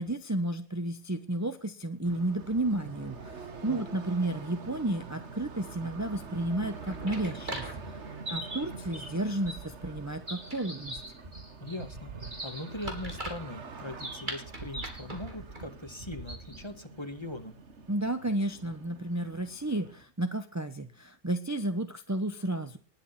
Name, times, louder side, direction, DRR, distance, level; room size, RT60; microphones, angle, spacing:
voice 1, 0.0-3.3 3.6-8.0 8.3-11.0 17.9-22.8, right 1 dB, 15° right, 8 dB, 1.0 m, -32 dB
sound 1, 2.0-20.0, right 4 dB, 60° right, 1.9 m, -46 dB
sound 2, 6.5-16.7, right 1 dB, 40° right, 4.1 m, -41 dB
voice 2, 11.6-17.6, left 1 dB, 20° left, 8 dB, 2.0 m, -41 dB
20.0 x 9.8 x 5.9 m, 0.38 s
omnidirectional pair, 1.3 m